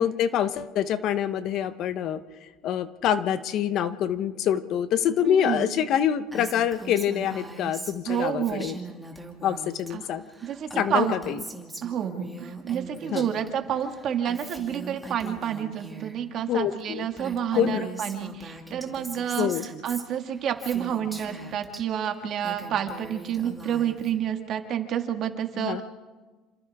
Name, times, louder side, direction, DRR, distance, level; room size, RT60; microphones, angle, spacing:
voice 1, 0.0-2.2 2.6-8.8 9.4-10.2 10.8-11.4 13.1-13.3 16.5-17.1 17.5-17.9 19.4-19.7 25.6-25.8, left 9 dB, 55° left, 12 dB, 0.9 m, -26 dB
voice 2, 5.2-5.7 8.1-8.7 9.9-10.1 10.4-11.1 11.8-25.8, right 9 dB, 50° right, 6 dB, 1.9 m, -29 dB
Female speech woman speaking, 6.3-9.9 10.2-13.5 13.8-16.2 16.8-16.9 17.1-21.8 22.2-24.2, right 3 dB, 5° right, 2.4 m, -41 dB
28.0 x 26.0 x 3.6 m, 1.3 s
cardioid pair, 135°, 0 cm